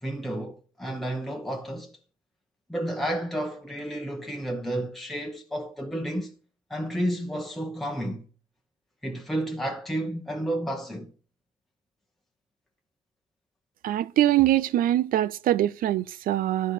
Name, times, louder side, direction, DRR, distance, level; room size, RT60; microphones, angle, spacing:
voice 1, 0.0-1.9 2.7-6.3 6.7-8.2 9.0-11.1, right 1 dB, ahead, 1.0 m, -31 dB
voice 2, 13.8-16.7, right 13 dB, 80° right, 0.5 m, -23 dB
12.0 x 4.3 x 6.6 m
cardioid pair, 150°, 14 cm